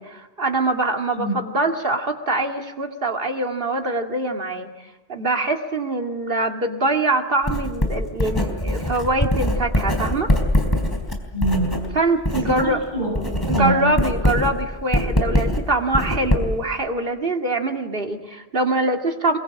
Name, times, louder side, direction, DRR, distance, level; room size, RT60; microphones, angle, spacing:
voice 1, 0.0-4.7 5.1-10.3 11.9-12.8 13.5-19.4, right 2 dB, 60° right, 3 dB, 2.5 m, -23 dB
Writing, 7.5-12.7 13.0-16.7, left 1 dB, 20° left, 3.8 m, -23 dB
voice 2, 11.3-11.8 12.3-13.9, right 2 dB, 45° left, 0 dB, 7.2 m, -25 dB
24.5 x 22.5 x 8.7 m, 1.1 s
omnidirectional pair, 1.1 m